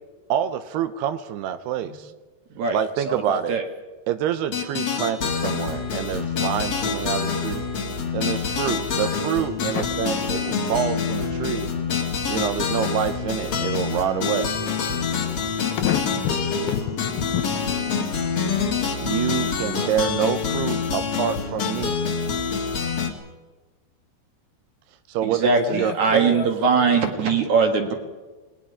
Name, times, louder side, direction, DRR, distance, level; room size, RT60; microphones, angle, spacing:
voice 1, 0.3-2.1 2.7-3.6 4.1-7.6 8.1-11.7 12.3-14.5 19.0-22.0 25.1-26.4, right 10 dB, 80° right, 11 dB, 2.7 m, -27 dB
voice 2, 3.0-3.6 25.2-27.9, right 4 dB, 55° right, 4 dB, 2.6 m, -21 dB
sound 1, 4.5-23.1, left 5 dB, 45° left, 2.2 m, -26 dB
voice 3, 15.8-17.5 19.7-19.9 25.7-26.0 26.3-26.5 26.9-27.0, left 10 dB, 75° left, 8 dB, 2.5 m, -28 dB
28.0 x 20.0 x 4.9 m, 1.2 s
omnidirectional pair, 4.9 m